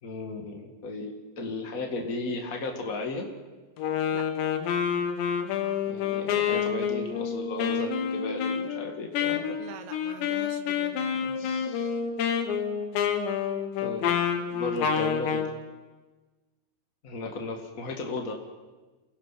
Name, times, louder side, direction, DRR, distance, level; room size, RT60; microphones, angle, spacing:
voice 1, 0.0-3.3 5.9-9.6 11.2-11.9 13.8-14.0 14.5-15.5 17.0-18.3, left 3 dB, 45° left, 2 dB, 1.1 m, -35 dB
Wind instrument woodwind instrument, 3.8-15.5, left 7 dB, 80° left, 3.8 m, -28 dB
voice 2, 9.6-11.5, right 11 dB, 75° right, 10 dB, 2.6 m, -45 dB
28.5 x 19.0 x 5.9 m, 1.3 s
omnidirectional pair, 5.1 m